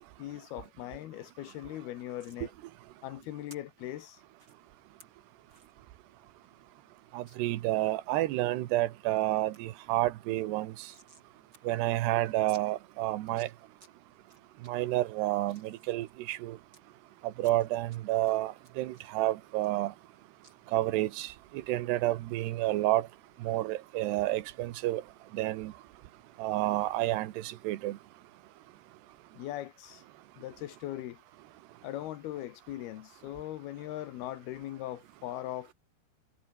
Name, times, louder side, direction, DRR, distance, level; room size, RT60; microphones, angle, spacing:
voice 1, 0.2-2.5 3.0-4.2 29.3-30.0 30.4-31.2 31.8-35.7, left 14 dB, 75° left, 3.1 m, -40 dB
sound 1, 2.2-2.4 3.5-3.6 4.4-4.5 5.0-5.1 5.5-5.7 6.1-6.2 6.4-6.5 7.3-7.4 7.9-8.4 8.9-9.2 9.5-9.6 9.9-11.3 11.5-11.6 11.9-12.0 12.5-12.6 13.2-13.9 14.3-14.7 15.2-16.8 17.4-18.0 18.2-20.1 20.4-20.5, right 2 dB, 25° right, 7.5 m, -57 dB
voice 2, 7.1-10.9 11.6-13.5 14.6-16.6 17.2-19.9 20.7-23.1 23.4-25.0 25.3-25.7 26.4-28.0, right 16 dB, 90° right, 3.2 m, -30 dB
omnidirectional pair, 4.7 m